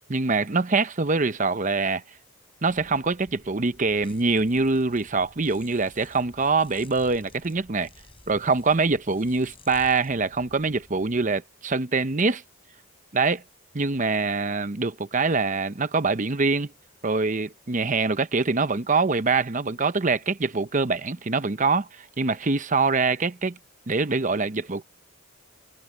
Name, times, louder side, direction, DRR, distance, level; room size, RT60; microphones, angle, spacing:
voice 1, 0.1-2.0 2.6-7.9 8.3-12.4 13.1-13.4 13.7-16.7 17.0-23.6 23.9-24.8, right 4 dB, 35° right, 0.8 m, -24 dB
sound 1, 2.7-11.3, left 2 dB, 25° left, 7.7 m, -52 dB
head